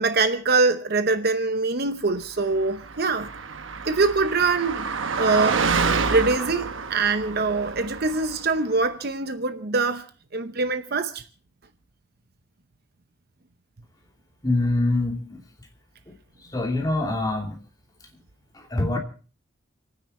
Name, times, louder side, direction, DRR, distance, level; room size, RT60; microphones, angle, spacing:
voice 1, 0.0-3.3 3.9-4.9 5.2-10.1 10.3-11.2, right 3 dB, 50° right, 0.8 m, -24 dB
Car passing by, 2.6-8.6, right 5 dB, 80° right, 1.0 m, -28 dB
voice 2, 14.4-15.4 16.1-16.2 16.4-17.6 18.5-19.0, left 2 dB, 20° left, 2.7 m, -25 dB
28.5 x 9.8 x 4.3 m
head